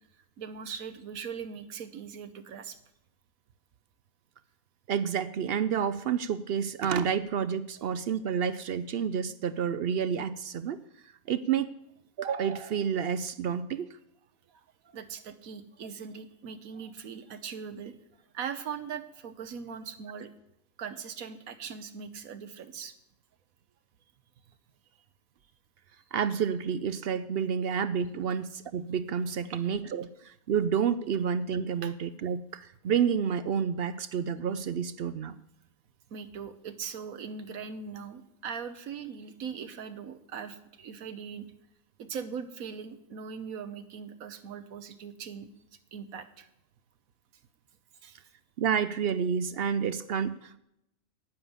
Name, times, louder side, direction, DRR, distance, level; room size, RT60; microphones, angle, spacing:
voice 1, 0.4-2.8 14.5-18.0 18.3-20.3 20.8-22.9 31.8-31.9 36.1-41.5 42.0-45.5 45.9-46.5 48.0-48.2, right 6 dB, 80° right, 10 dB, 1.3 m, -40 dB
voice 2, 4.9-10.8 11.3-11.7 12.2-13.9 26.1-35.4 48.6-50.6, right 7 dB, 65° right, 15 dB, 0.6 m, -29 dB
9.7 x 9.1 x 7.1 m, 0.81 s
omnidirectional pair, 1.5 m